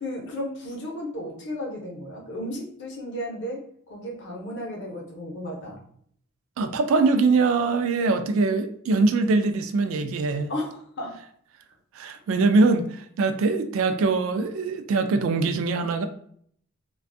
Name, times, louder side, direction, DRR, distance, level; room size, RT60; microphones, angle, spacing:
voice 1, 0.0-3.6 3.9-5.8 10.5-11.1, left 1 dB, 55° left, 0 dB, 0.7 m, -34 dB
voice 2, 6.6-10.5 12.0-16.1, right 3 dB, 65° right, 7 dB, 0.3 m, -22 dB
2.4 x 2.2 x 2.5 m, 0.63 s
head